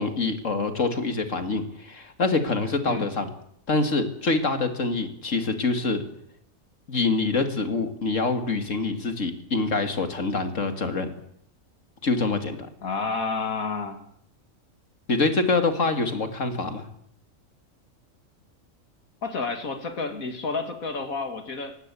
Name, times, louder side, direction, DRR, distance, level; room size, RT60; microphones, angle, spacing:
voice 1, 0.0-3.3 3.7-6.0 6.9-11.1 12.0-12.6 15.1-16.9, left 3 dB, 65° left, 8 dB, 2.6 m, -25 dB
voice 2, 12.8-14.0 19.2-21.8, left 4 dB, 85° left, 7 dB, 2.7 m, -30 dB
19.0 x 16.5 x 8.4 m, 0.70 s
omnidirectional pair, 1.4 m